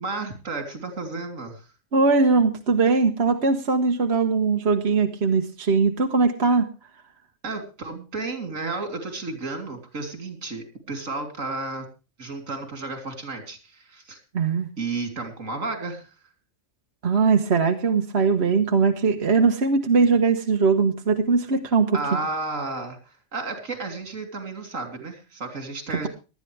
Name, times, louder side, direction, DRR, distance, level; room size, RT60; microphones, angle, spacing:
voice 1, 0.0-1.7 7.4-11.9 12.2-14.2 14.8-16.1 21.9-26.1, right 3 dB, 75° right, 5 dB, 3.5 m, -32 dB
voice 2, 1.9-6.7 14.3-14.7 17.0-22.0, right 4 dB, 55° right, 4 dB, 1.4 m, -20 dB
19.0 x 12.5 x 3.3 m, 0.32 s
omnidirectional pair, 1.3 m